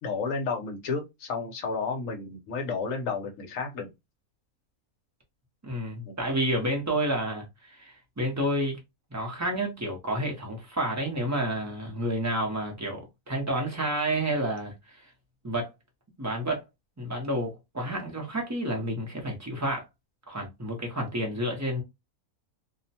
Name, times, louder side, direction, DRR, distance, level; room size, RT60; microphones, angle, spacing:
voice 1, 0.0-3.9 6.1-6.2, left 4 dB, 70° left, 1.1 m, -32 dB
voice 2, 5.6-8.8 9.1-15.0 15.4-15.7 16.2-16.6 17.0-19.8 20.3-21.8, right 1 dB, 20° right, 0.5 m, -30 dB
2.7 x 2.1 x 2.7 m
omnidirectional pair, 1.5 m